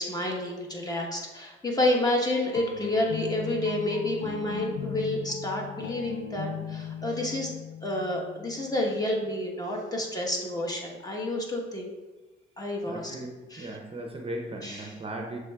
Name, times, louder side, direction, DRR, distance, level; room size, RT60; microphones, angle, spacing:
voice 1, 0.0-7.5 7.8-11.8 12.6-13.2 13.5-13.8 14.6-14.9, left 1 dB, 20° left, -1 dB, 1.0 m, -29 dB
sound 1, 2.4-9.1 10.6-11.3, left 8 dB, 65° left, 0.4 m, -39 dB
voice 2, 12.8-15.4, right 1 dB, 30° right, 2 dB, 0.6 m, -37 dB
7.1 x 3.2 x 2.3 m, 1.2 s
cardioid pair, 90°, 20 cm